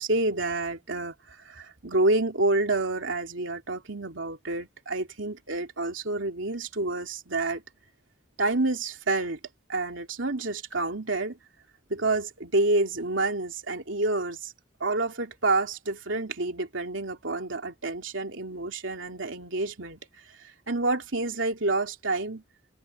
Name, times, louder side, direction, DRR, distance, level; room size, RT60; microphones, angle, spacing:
voice 1, 0.0-7.6 8.4-9.4 9.7-11.4 11.9-14.5 14.8-20.0 20.3-22.4, right 2 dB, 85° right, 3.1 m, -28 dB
head